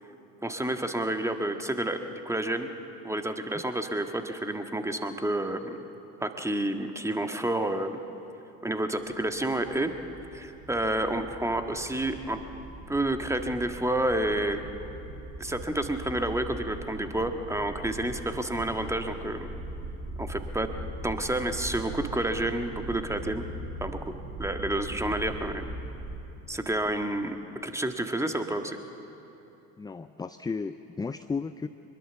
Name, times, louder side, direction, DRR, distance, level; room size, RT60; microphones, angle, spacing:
voice 1, 0.4-2.7 3.0-5.8 6.2-8.0 8.6-9.9 10.3-12.4 12.9-14.6 15.4-19.5 20.2-20.7 21.0-23.4 23.8-24.1 24.4-25.7 26.5-27.4 27.6-28.8, right 1 dB, 5° right, 6 dB, 1.6 m, -29 dB
sound 1, 9.1-26.0, right 1 dB, 30° right, 7.2 m, -40 dB
voice 2, 29.8-31.7, left 4 dB, 10° left, 11 dB, 0.4 m, -34 dB
24.0 x 21.5 x 7.1 m, 3.0 s
hypercardioid pair, 60°, 44 cm